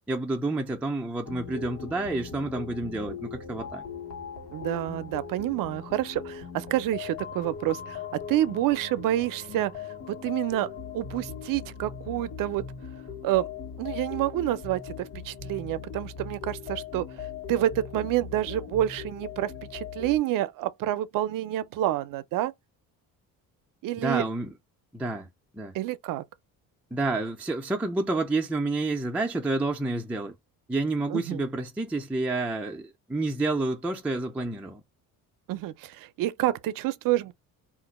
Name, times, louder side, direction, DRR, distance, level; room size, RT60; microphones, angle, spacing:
voice 1, 0.1-3.8 24.0-24.5 24.9-25.3 25.5-25.8 26.9-30.3 30.7-34.8, right 2 dB, 5° right, 0.3 m, -29 dB
sound 1, 1.3-20.2, left 6 dB, 75° left, 1.2 m, -40 dB
voice 2, 4.5-9.7 10.1-10.7 10.9-12.6 13.2-13.5 13.8-17.1 17.5-22.5 23.8-24.2 25.7-26.2 31.1-31.4 35.5-37.3, right 14 dB, 65° right, 0.5 m, -28 dB
2.4 x 2.2 x 4.0 m
cardioid pair, 130°, 36 cm